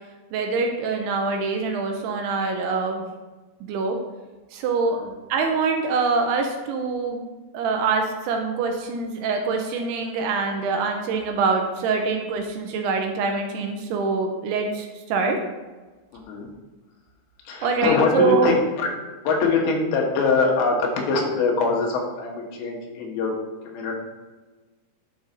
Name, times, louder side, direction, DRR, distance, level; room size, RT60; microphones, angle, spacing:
voice 1, 0.3-3.0 3.6-4.0 4.5-5.0 5.3-7.2 7.5-15.4 17.6-18.6, right 4 dB, 80° right, 3 dB, 2.6 m, -24 dB
voice 2, 16.1-16.5 17.5-18.6 19.2-23.3 23.6-23.9, left 4 dB, 90° left, 0 dB, 3.3 m, -23 dB
11.0 x 5.1 x 2.6 m, 1.2 s
omnidirectional pair, 4.9 m